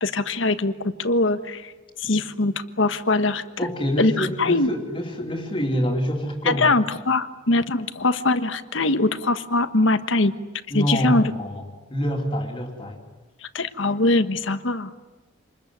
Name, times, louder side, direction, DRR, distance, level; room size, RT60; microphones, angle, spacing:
voice 1, 0.0-1.7 2.0-3.4 4.0-4.7 6.4-10.3 10.7-11.2 13.5-14.9, left 2 dB, 65° left, 10 dB, 1.3 m, -22 dB
voice 2, 3.6-6.7 10.7-13.0, equal, 25° left, 2 dB, 3.0 m, -26 dB
27.5 x 21.0 x 9.8 m, 1.2 s
head